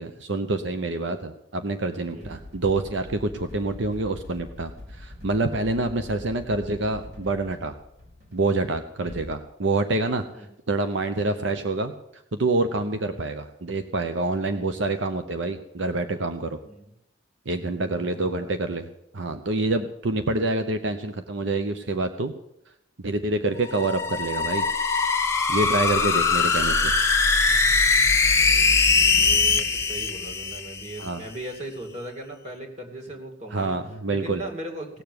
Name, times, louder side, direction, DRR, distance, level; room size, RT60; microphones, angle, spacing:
voice 1, 0.0-7.8 8.3-10.2 10.7-16.6 17.5-18.8 19.1-22.3 23.0-24.6 25.5-26.9 31.0-31.2 33.5-34.4, right 2 dB, 75° right, 8 dB, 0.8 m, -27 dB
sound 1, 1.9-9.3, left 1 dB, 55° right, 5.2 m, -43 dB
voice 2, 17.7-18.7 28.2-33.8 34.1-35.0, right 1 dB, 35° right, 2 dB, 2.5 m, -39 dB
sound 2, 23.6-31.1, left 4 dB, 15° left, 1.2 m, -21 dB
17.5 x 7.0 x 9.5 m, 0.82 s
head